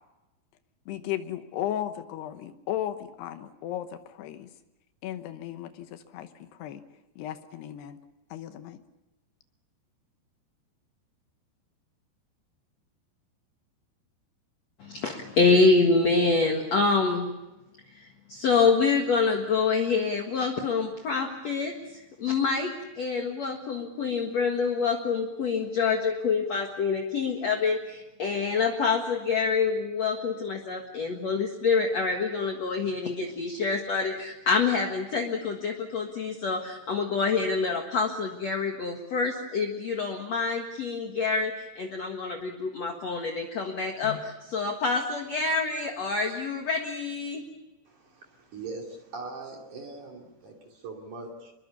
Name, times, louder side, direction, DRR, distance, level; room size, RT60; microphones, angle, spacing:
voice 1, 0.9-4.5 5.0-6.8 7.2-8.0 8.3-8.8, left 11 dB, 80° left, 9 dB, 3.1 m, -35 dB
voice 2, 14.8-17.3 17.9-21.7 22.2-22.7 23.0-47.4, left 4 dB, 50° left, 3 dB, 2.3 m, -26 dB
voice 3, 47.9-51.5, right 3 dB, 50° right, 1 dB, 3.9 m, -41 dB
26.5 x 22.0 x 7.0 m, 1.0 s
omnidirectional pair, 4.8 m